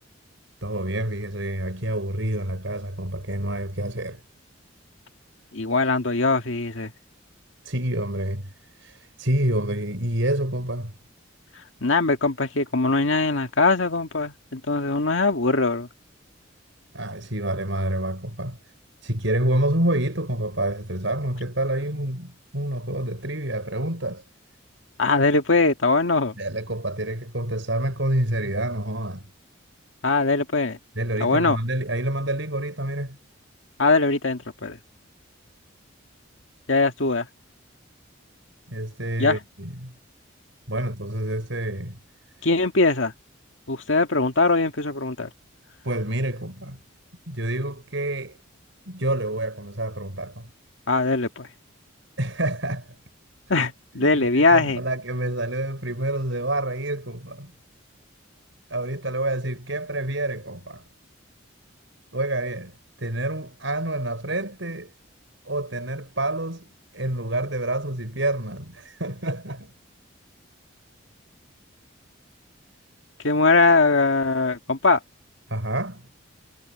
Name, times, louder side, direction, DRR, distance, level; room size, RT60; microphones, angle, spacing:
voice 1, 0.6-4.2 7.6-10.9 16.9-18.6 19.0-24.2 26.4-29.3 31.0-33.2 38.7-39.9 40.7-42.0 45.8-46.8 47.3-48.4 48.9-50.5 52.2-53.0 53.6-53.7 53.9-57.5 58.7-60.8 62.1-64.9 65.4-69.7 75.5-76.0, right 1 dB, 70° right, 6.2 m, -28 dB
voice 2, 5.5-6.9 11.8-15.9 25.0-26.4 30.0-30.8 31.2-31.6 33.8-34.8 36.7-37.3 39.2-39.4 42.4-43.1 43.7-45.3 50.9-51.5 53.5-54.8 73.2-75.0, left 3 dB, 75° left, 2.0 m, -21 dB
head